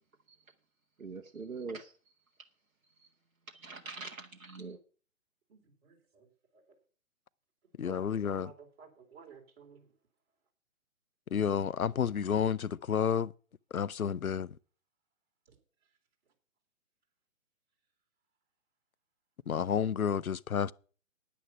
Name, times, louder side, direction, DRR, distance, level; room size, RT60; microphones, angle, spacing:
voice 1, 1.0-1.9 3.5-4.8, right 4 dB, 80° right, 1.1 m, -42 dB
voice 2, 5.5-6.6 7.8-9.9, right 6 dB, 45° right, 3.8 m, -54 dB
voice 3, 7.8-8.5 11.3-13.3 13.7-14.5 19.5-20.7, left 7 dB, 85° left, 0.6 m, -30 dB
10.0 x 9.7 x 5.7 m
figure-of-eight pair, 135°, 42 cm